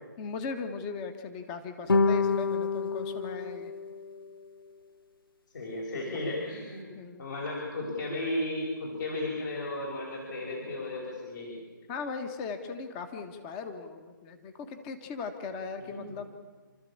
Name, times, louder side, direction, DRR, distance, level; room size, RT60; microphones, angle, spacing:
voice 1, 0.2-3.7 5.9-6.1 6.9-7.2 11.9-16.3, left 5 dB, 20° left, 8 dB, 1.4 m, -38 dB
sound 1, 1.9-4.4, left 4 dB, 80° left, 1.4 m, -28 dB
voice 2, 5.5-6.8 7.2-11.6 15.8-16.2, left 1 dB, 55° left, -3 dB, 6.0 m, -34 dB
29.5 x 13.0 x 8.7 m, 1.4 s
hypercardioid pair, 160°, 12 cm